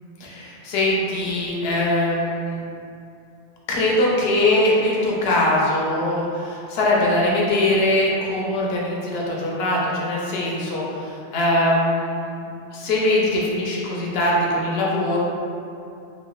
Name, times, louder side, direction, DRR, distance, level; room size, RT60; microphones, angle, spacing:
voice 1, 0.2-2.6 3.7-15.2, left 1 dB, 65° left, -4 dB, 0.7 m, -22 dB
3.0 x 2.2 x 2.3 m, 2.6 s
omnidirectional pair, 1.2 m